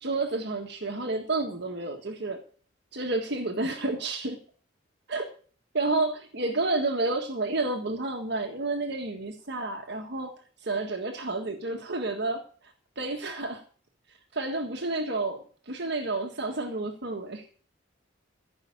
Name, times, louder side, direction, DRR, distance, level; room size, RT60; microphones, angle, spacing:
voice 1, 0.0-2.4 2.9-4.4 5.1-5.3 5.7-10.3 10.6-13.6 14.3-17.4, right 2 dB, 60° right, 3 dB, 1.7 m, -30 dB
15.0 x 5.7 x 8.8 m, 0.42 s
head